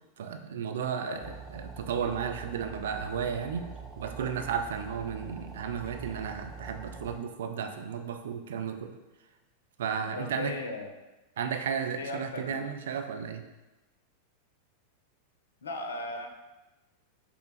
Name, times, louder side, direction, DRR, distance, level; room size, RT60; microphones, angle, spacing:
voice 1, 0.2-3.6 4.0-8.9 9.8-10.6 11.4-13.4, right 7 dB, 60° right, 6 dB, 0.4 m, -33 dB
sound 1, 1.2-7.2, right 4 dB, 5° right, 0.5 m, -44 dB
voice 2, 10.2-10.9 11.9-12.7 15.6-16.3, left 2 dB, 70° left, 5 dB, 0.4 m, -37 dB
3.4 x 3.0 x 3.9 m, 1.1 s
figure-of-eight pair, 90°, 0 cm